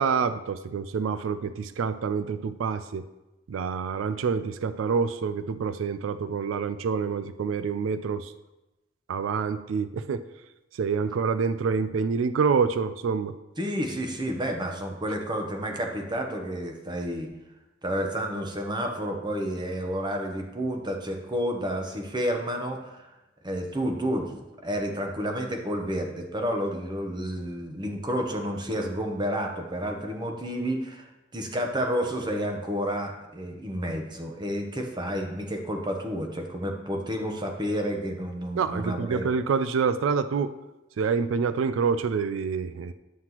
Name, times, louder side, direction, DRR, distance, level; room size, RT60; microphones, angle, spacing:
voice 1, 0.0-3.0 3.5-8.3 9.1-10.2 10.7-13.3 38.6-40.5 41.0-42.9, right 5 dB, 85° right, 12 dB, 0.4 m, -27 dB
voice 2, 13.6-17.3 17.8-23.1 23.4-39.3, equal, 25° right, 3 dB, 0.9 m, -30 dB
9.3 x 5.9 x 2.9 m, 1.0 s
head